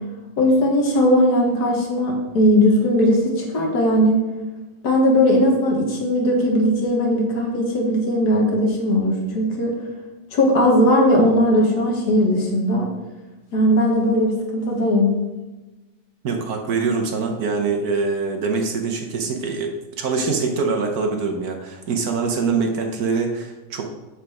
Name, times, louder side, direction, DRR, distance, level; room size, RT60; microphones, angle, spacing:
voice 1, 0.4-4.2 4.8-9.7 10.3-12.9 13.5-15.1, equal, 65° left, -1 dB, 1.9 m, -18 dB
voice 2, 16.2-23.9, right 4 dB, 60° right, 3 dB, 1.3 m, -24 dB
7.3 x 5.2 x 4.8 m, 1.1 s
omnidirectional pair, 1.9 m